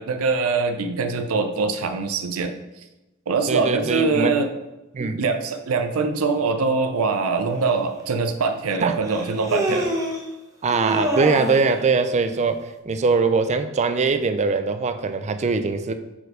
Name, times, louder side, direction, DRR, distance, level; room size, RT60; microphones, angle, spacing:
voice 1, 0.0-2.8 3.3-4.5 5.2-9.9, right 4 dB, 85° right, 7 dB, 0.5 m, -23 dB
voice 2, 3.5-4.3 4.9-5.2 8.8-8.9 10.6-15.9, right 4 dB, 35° right, 9 dB, 0.4 m, -22 dB
Human voice, 7.7-7.8 9.1-10.3 10.7-11.7, equal, 15° right, 0.8 m, -26 dB
4.4 x 4.3 x 4.9 m, 1.0 s
head